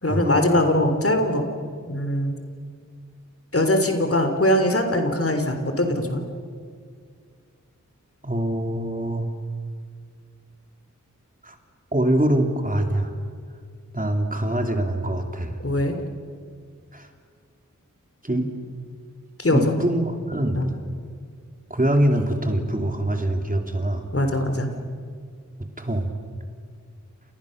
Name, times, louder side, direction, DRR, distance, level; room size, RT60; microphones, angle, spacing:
voice 1, 0.0-1.5 1.9-2.3 3.5-6.2 15.6-16.0 19.4-19.8 20.6-20.7 24.1-24.7, left 1 dB, 45° left, 5 dB, 3.5 m, -21 dB
voice 2, 8.2-9.3 11.4-11.6 11.9-13.1 13.9-15.5 16.9-17.1 18.2-18.5 19.5-20.8 21.7-24.1 25.8-26.1, right 1 dB, 25° right, 4 dB, 3.3 m, -24 dB
28.5 x 28.5 x 6.7 m, 2.1 s
wide cardioid pair, 55°, 31 cm